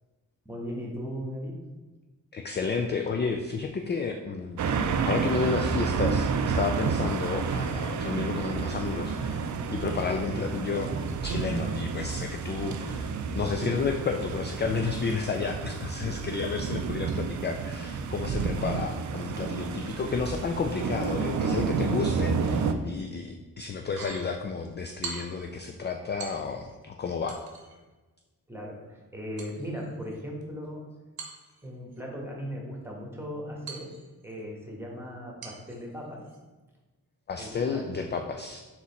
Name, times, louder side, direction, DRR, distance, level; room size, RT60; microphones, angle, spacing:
voice 1, 0.4-1.7 10.1-10.4 28.5-30.9 31.6-33.9 34.2-36.2 37.4-38.0, equal, 5° right, -2 dB, 1.3 m, -38 dB
voice 2, 2.3-4.6 5.0-10.9 11.2-13.1 13.3-27.4 37.3-38.6, left 5 dB, 30° left, 4 dB, 0.4 m, -31 dB
sound 1, 4.6-22.7, right 5 dB, 55° right, 0.4 m, -30 dB
sound 2, 23.8-24.3 25.0-25.5 26.2-26.8 27.3-27.8 29.4-30.4 31.2-32.0 33.7-34.4 35.4-35.8 36.3-36.4, right 4 dB, 75° right, 0.8 m, -43 dB
4.0 x 3.0 x 4.1 m, 1.2 s
cardioid pair, 50°, 36 cm